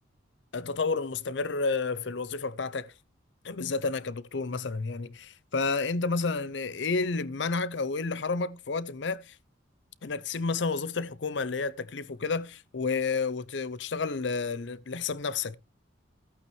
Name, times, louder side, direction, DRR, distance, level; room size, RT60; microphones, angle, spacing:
voice 1, 0.5-2.9 3.4-9.4 10.0-15.6, left 4 dB, 65° left, 0.6 m, -30 dB
15.0 x 8.6 x 3.2 m
head